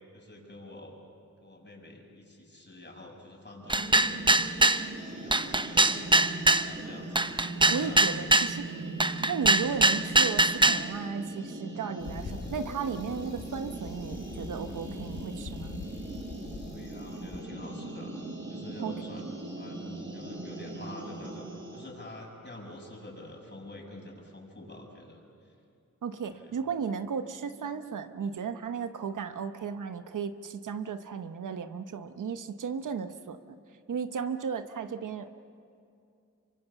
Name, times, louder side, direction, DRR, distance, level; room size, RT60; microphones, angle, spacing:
voice 1, 0.1-1.0 1.4-4.5 4.8-6.0 6.3-7.3 7.6-8.1 16.7-18.2 18.5-21.5 21.7-25.5 26.3-26.6, left 1 dB, 35° left, 0 dB, 6.6 m, -47 dB
sound 1, 3.6-21.9, right 2 dB, 40° right, 5.9 m, -40 dB
sound 2, 3.7-4.8 5.3-6.7 7.2-8.5 9.0-10.8, right 2 dB, 15° right, 0.8 m, -22 dB
voice 2, 7.7-8.7 9.3-15.8 18.8-19.1 26.0-33.4 33.9-35.3, right 6 dB, 80° right, 9 dB, 1.1 m, -35 dB
Bicycle, 12.0-17.4, left 5 dB, 65° left, 1.6 m, -44 dB
25.5 x 24.0 x 7.1 m, 2.5 s
cardioid pair, 60°, 31 cm